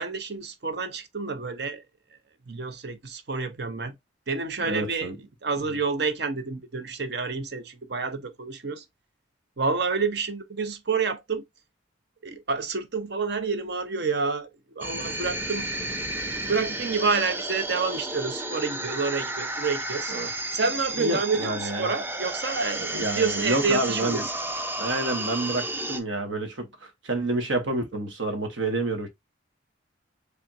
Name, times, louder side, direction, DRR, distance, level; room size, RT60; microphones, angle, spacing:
voice 1, 0.0-1.8 2.5-3.9 4.3-5.1 5.4-8.8 9.6-11.4 12.2-14.5 14.8-15.7 16.5-20.1 20.5-22.9 23.1-24.2, right 4 dB, 55° right, 0.7 m, -28 dB
voice 2, 4.6-5.2 20.1-20.3 20.9-21.9 22.9-24.3 24.8-29.1, right 2 dB, 75° right, 1.3 m, -29 dB
sound 1, 14.8-26.0, right 1 dB, 10° right, 0.5 m, -32 dB
4.4 x 3.4 x 2.5 m
head